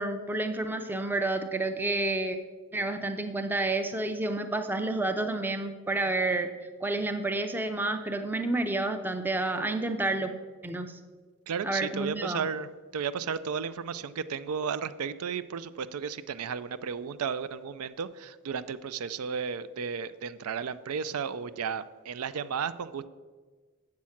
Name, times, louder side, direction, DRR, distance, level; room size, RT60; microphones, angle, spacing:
voice 1, 0.0-2.4 2.7-6.5 6.8-10.3 10.6-11.0 11.6-12.5, right 2 dB, 10° right, 7 dB, 0.5 m, -30 dB
voice 2, 11.5-23.1, right 6 dB, 90° right, 14 dB, 0.4 m, -34 dB
7.6 x 7.2 x 5.8 m, 1.4 s
head